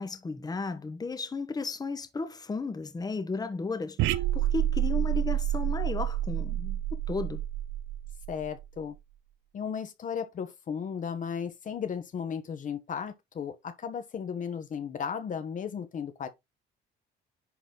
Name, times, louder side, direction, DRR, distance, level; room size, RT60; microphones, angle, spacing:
voice 1, 0.0-7.4, left 4 dB, 20° left, 1.2 m, -34 dB
sound 1, 4.0-8.6, right 12 dB, 80° right, 0.7 m, -29 dB
voice 2, 8.3-8.9 9.5-16.3, left 7 dB, 40° left, 1.1 m, -35 dB
10.5 x 4.1 x 3.8 m
cardioid pair, 120°, 19 cm